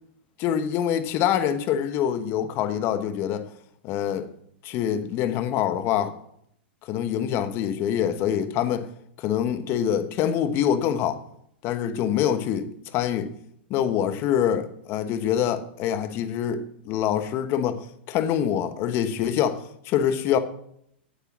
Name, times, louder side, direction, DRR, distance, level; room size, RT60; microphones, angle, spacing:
voice 1, 0.4-3.5 3.8-4.3 4.6-6.2 6.8-8.9 9.2-11.2 11.6-13.3 13.7-20.4, left 9 dB, 40° left, 1.2 m, -25 dB
9.0 x 8.2 x 6.2 m
hypercardioid pair, 110°, 6 cm